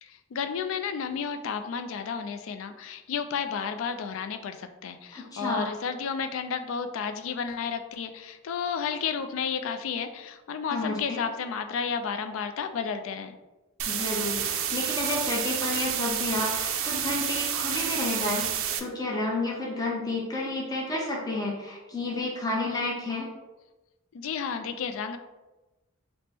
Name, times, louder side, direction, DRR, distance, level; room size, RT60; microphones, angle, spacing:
voice 1, 0.0-13.4 24.1-25.2, left 6 dB, 65° left, 8 dB, 0.3 m, -32 dB
voice 2, 5.1-5.7 10.7-11.2 13.9-18.5 18.8-23.3, left 2 dB, 20° left, -3 dB, 0.6 m, -31 dB
sound 1, 13.8-18.8, right 9 dB, 65° right, 0.4 m, -29 dB
3.4 x 2.0 x 4.2 m, 1.1 s
head